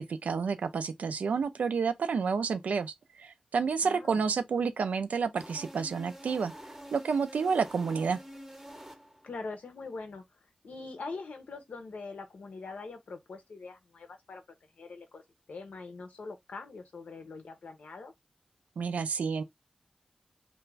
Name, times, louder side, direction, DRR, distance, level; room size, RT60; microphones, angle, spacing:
voice 1, 0.0-6.5 6.9-8.2 18.8-19.4, right 5 dB, 90° right, 0.3 m, -30 dB
voice 2, 3.8-4.2 9.2-10.2 10.6-14.4 14.8-15.2 15.5-18.1, left 3 dB, 85° left, 0.6 m, -43 dB
sound 1, 5.4-9.4, equal, 15° right, 0.6 m, -47 dB
2.4 x 2.1 x 3.1 m
cardioid pair, 55°, 2 cm